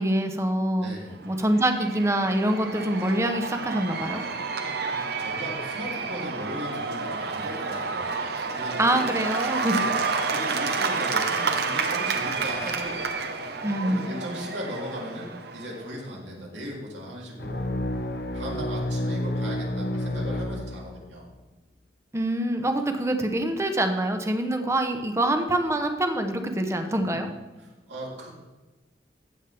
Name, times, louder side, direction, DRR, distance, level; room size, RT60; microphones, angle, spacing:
voice 1, 0.0-0.9 1.2-4.2 8.8-9.8 13.6-14.0 22.1-27.3, right 1 dB, 15° right, 6 dB, 0.8 m, -25 dB
voice 2, 0.8-1.2 4.8-9.1 9.7-9.9 10.3-13.0 13.8-17.7 18.3-21.3 26.8-27.3 27.6-28.3, equal, 85° right, -3 dB, 2.9 m, -38 dB
Cheering / Applause / Crowd, 1.2-15.9, right 4 dB, 60° right, 0.8 m, -30 dB
sound 1, 17.4-21.2, left 1 dB, 60° left, 0.9 m, -30 dB
15.5 x 7.3 x 3.4 m, 1.1 s
head